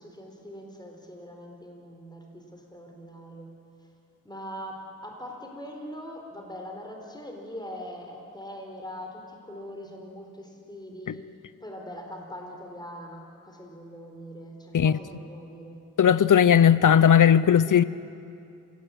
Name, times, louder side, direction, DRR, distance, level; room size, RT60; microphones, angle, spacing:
voice 1, 0.0-3.5 4.2-11.2 11.6-15.8, equal, 15° left, 4.4 m, -42 dB
voice 2, 16.0-17.8, left 8 dB, 70° left, 0.7 m, -17 dB
28.0 x 17.0 x 8.5 m
wide cardioid pair, 75°, 32 cm